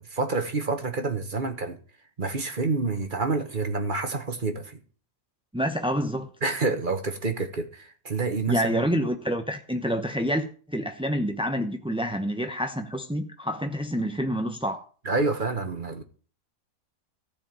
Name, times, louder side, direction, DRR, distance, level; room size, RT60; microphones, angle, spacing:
voice 1, 0.0-1.8 2.2-4.8 6.4-8.8 15.0-16.0, right 3 dB, 35° right, 1.3 m, -28 dB
voice 2, 5.5-6.3 8.5-14.8, equal, 5° right, 0.4 m, -27 dB
14.5 x 5.1 x 8.8 m
omnidirectional pair, 1.7 m